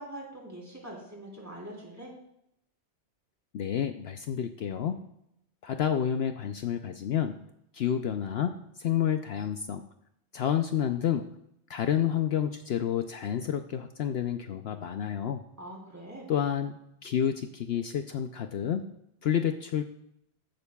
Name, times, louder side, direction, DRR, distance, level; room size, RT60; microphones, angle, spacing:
voice 1, 0.0-2.1 15.6-16.3, right 1 dB, 15° right, -3 dB, 3.4 m, -43 dB
voice 2, 3.5-5.0 5.6-7.4 7.7-9.8 10.3-11.3 11.7-15.4 16.3-16.8 17.0-18.8 19.2-19.8, left 9 dB, 65° left, 7 dB, 0.8 m, -29 dB
15.0 x 12.0 x 2.3 m, 0.78 s
omnidirectional pair, 1.2 m